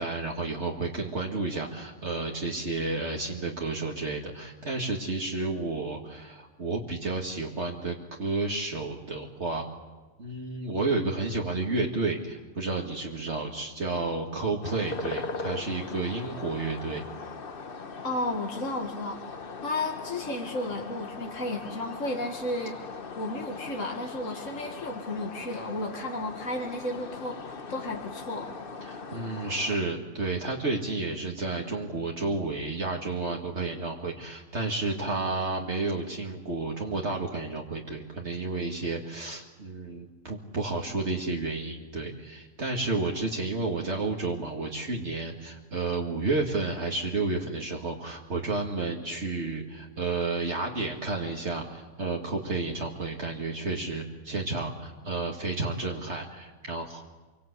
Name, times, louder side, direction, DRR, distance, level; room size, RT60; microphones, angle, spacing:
voice 1, 0.0-9.6 10.2-17.0 28.8-57.0, right 3 dB, 60° right, 0 dB, 2.4 m, -31 dB
sound 1, 14.6-29.8, left 4 dB, 50° left, 1.3 m, -40 dB
voice 2, 18.0-19.2 19.6-22.8 23.2-28.6, left 1 dB, 80° left, 2 dB, 2.4 m, -33 dB
26.5 x 24.0 x 8.4 m, 1.3 s
omnidirectional pair, 1.3 m